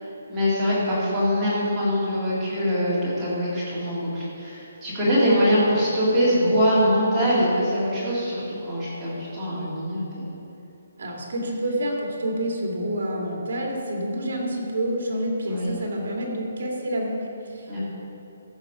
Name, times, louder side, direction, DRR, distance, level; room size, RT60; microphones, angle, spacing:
voice 1, 0.0-10.3 15.5-15.7 17.7-17.8, equal, 5° right, -13 dB, 2.1 m, -23 dB
voice 2, 11.0-17.8, right 1 dB, 50° right, 0 dB, 2.1 m, -28 dB
14.0 x 5.7 x 4.8 m, 2.9 s
hypercardioid pair, 180°, 0 cm